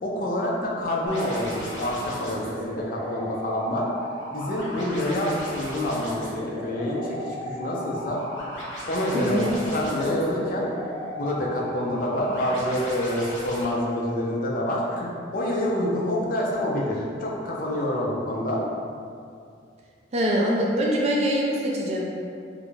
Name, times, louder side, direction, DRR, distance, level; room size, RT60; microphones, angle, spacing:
voice 1, 0.0-3.9 4.3-8.2 8.9-10.7 11.2-18.6, left 1 dB, 50° left, -2 dB, 0.4 m, -27 dB
sound 1, 1.1-13.7, equal, 75° left, 1.0 m, -36 dB
voice 2, 9.1-9.6 20.1-22.0, equal, 35° right, -3 dB, 0.4 m, -24 dB
2.4 x 2.1 x 3.1 m, 2.3 s
head